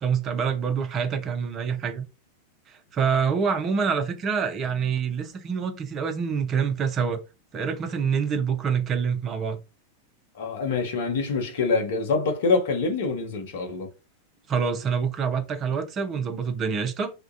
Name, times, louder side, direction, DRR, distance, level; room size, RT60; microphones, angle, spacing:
voice 1, 0.0-2.0 2.7-7.2 7.5-9.6 14.5-17.1, right 6 dB, 30° right, 0.5 m, -26 dB
voice 2, 10.4-13.9, left 4 dB, 55° left, 0.6 m, -25 dB
2.3 x 2.1 x 2.6 m
figure-of-eight pair, 90°, 0 cm